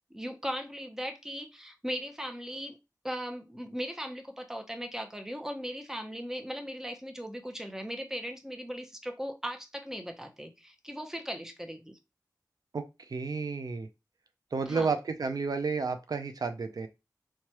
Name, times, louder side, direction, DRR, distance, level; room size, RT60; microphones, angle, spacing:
voice 1, 0.1-2.8 3.0-12.0 14.7-14.9, equal, 5° right, 5 dB, 0.6 m, -38 dB
voice 2, 12.7-13.9 14.5-16.9, right 4 dB, 65° right, 8 dB, 0.4 m, -31 dB
3.1 x 2.2 x 2.9 m, 0.25 s
wide cardioid pair, 60°, 7 cm